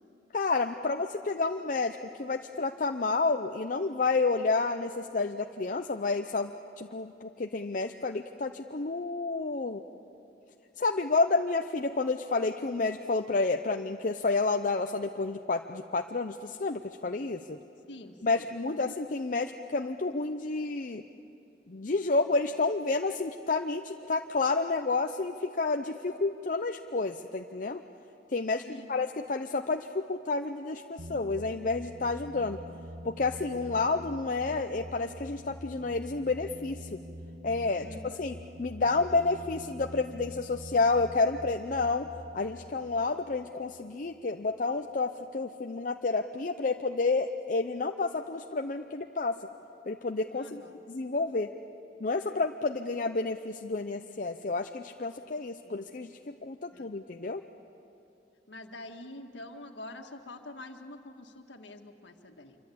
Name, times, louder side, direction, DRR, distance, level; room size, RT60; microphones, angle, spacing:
voice 1, 0.3-6.5 6.8-9.8 10.8-17.6 18.2-21.0 21.7-27.8 28.3-32.6 33.0-37.0 37.4-42.1 42.3-49.4 49.9-50.6 50.9-51.5 52.0-57.4, left 3 dB, 45° left, 5 dB, 0.6 m, -30 dB
voice 2, 17.9-18.9 28.7-28.9 37.8-38.2 50.3-50.8 55.6-55.9 56.7-56.9 58.5-62.6, left 1 dB, 90° left, 5 dB, 1.8 m, -46 dB
sound 1, 31.0-44.2, equal, 80° right, 1.0 m, -46 dB
26.5 x 24.0 x 8.6 m, 2.7 s
head